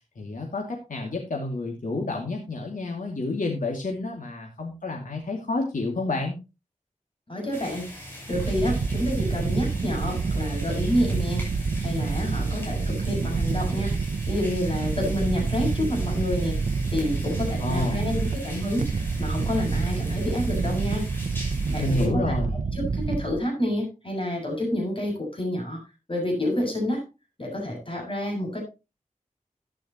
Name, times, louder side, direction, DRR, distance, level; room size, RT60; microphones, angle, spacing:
voice 1, 0.2-6.4 17.6-18.1 21.8-22.6, left 2 dB, 75° left, 0 dB, 2.4 m, -29 dB
voice 2, 7.3-7.9 8.3-11.5 11.8-13.9 14.3-16.6 16.9-18.9 19.2-21.1 21.7-22.3 22.7-25.8 26.1-27.0 27.4-28.6, left 1 dB, 40° left, 1 dB, 7.3 m, -28 dB
sound 1, 7.5-22.1, equal, 15° left, 7.6 m, -42 dB
sound 2, 8.3-23.4, right 4 dB, 65° right, 0.7 m, -28 dB
13.5 x 10.0 x 3.0 m, 0.27 s
wide cardioid pair, 60°, 14 cm